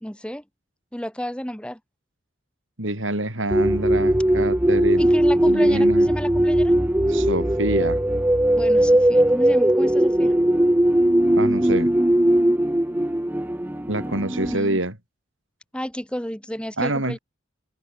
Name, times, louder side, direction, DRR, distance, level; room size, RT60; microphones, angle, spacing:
voice 1, 0.0-0.4 0.9-1.8 5.0-6.7 8.6-10.3 14.5-14.8 15.7-17.2, equal, 5° left, 1.9 m, -31 dB
voice 2, 2.8-5.1 5.4-6.1 7.1-8.0 11.3-11.9 13.9-14.9 16.8-17.2, right 1 dB, 85° right, 6.4 m, -26 dB
sound 1, 3.5-14.5, right 1 dB, 10° right, 0.8 m, -19 dB
head